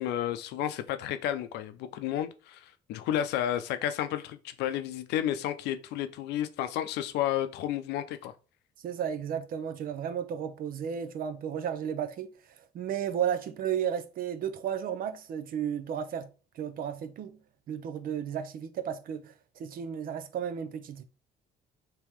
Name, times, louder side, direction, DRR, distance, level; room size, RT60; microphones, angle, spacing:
voice 1, 0.0-8.3, left 11 dB, 85° left, 0.5 m, -32 dB
voice 2, 8.8-12.3 12.7-16.3 16.6-17.4 17.7-21.0, right 8 dB, 55° right, 0.6 m, -33 dB
3.5 x 2.9 x 4.6 m
cardioid pair, 110°, 17 cm